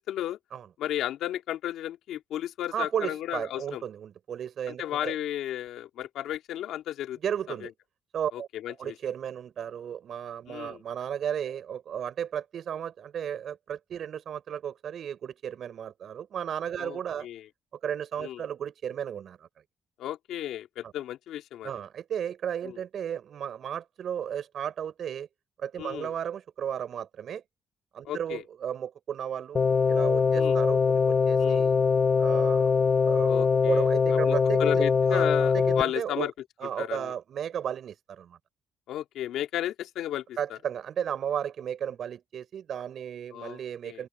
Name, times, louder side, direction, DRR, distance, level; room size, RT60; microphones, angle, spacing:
voice 1, 0.1-0.4 0.8-3.8 4.7-7.2 8.3-8.9 10.5-10.8 16.8-17.4 18.2-18.4 20.0-21.7 22.6-22.8 25.8-26.1 28.0-28.4 30.3-30.6 31.4-31.7 33.3-33.8 34.1-36.3 36.8-37.1 38.9-40.2 40.5-40.6 43.3-44.0, left 12 dB, 85° left, 2.8 m, -34 dB
voice 2, 2.7-5.1 7.2-7.7 8.1-8.5 8.8-17.3 17.8-19.5 20.8-20.9 21.6-25.3 25.6-27.4 27.9-31.8 32.2-32.7 33.0-36.3 36.6-38.4 40.4-44.1, right 9 dB, 65° right, 6.5 m, -34 dB
sound 1, 29.6-35.8, left 5 dB, 40° left, 2.2 m, -22 dB
open air
cardioid pair, 90°, 0 cm